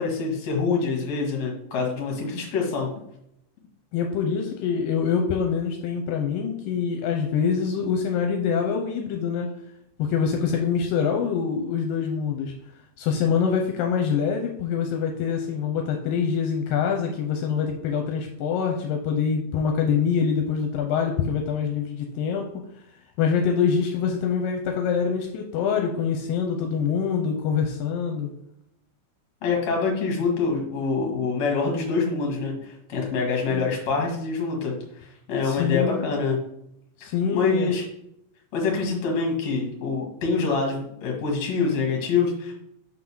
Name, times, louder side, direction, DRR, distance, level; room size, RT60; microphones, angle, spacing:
voice 1, 0.0-2.9 29.4-34.7 35.3-36.4 37.0-37.8 38.5-42.5, left 4 dB, 55° left, 0 dB, 2.6 m, -25 dB
voice 2, 3.9-9.5 10.0-12.5 13.0-22.6 23.2-28.3 35.4-36.0 37.0-37.8, left 6 dB, 85° left, 2 dB, 2.3 m, -25 dB
5.8 x 3.9 x 6.1 m, 0.76 s
omnidirectional pair, 4.1 m